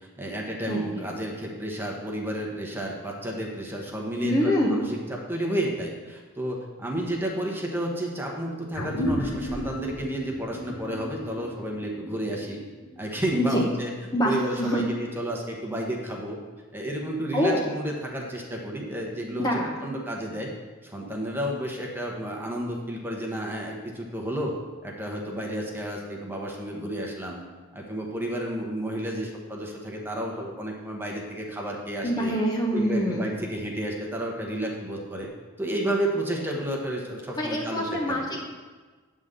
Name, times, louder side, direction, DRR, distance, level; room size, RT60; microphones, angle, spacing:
voice 1, 0.2-12.6 13.0-13.9 14.2-16.4 16.7-20.5 20.8-24.6 24.8-27.4 27.7-32.3 32.7-35.3 35.6-38.4, right 1 dB, 10° right, -1 dB, 1.0 m, -31 dB
voice 2, 0.7-1.0 4.2-4.8 13.4-13.7 14.1-14.8 17.3-17.6 19.4-19.9 32.0-33.3 37.4-38.4, equal, 20° left, -1 dB, 0.8 m, -25 dB
sound 1, 8.7-13.6, equal, 85° left, 0.9 m, -34 dB
9.3 x 3.7 x 6.6 m, 1.4 s
head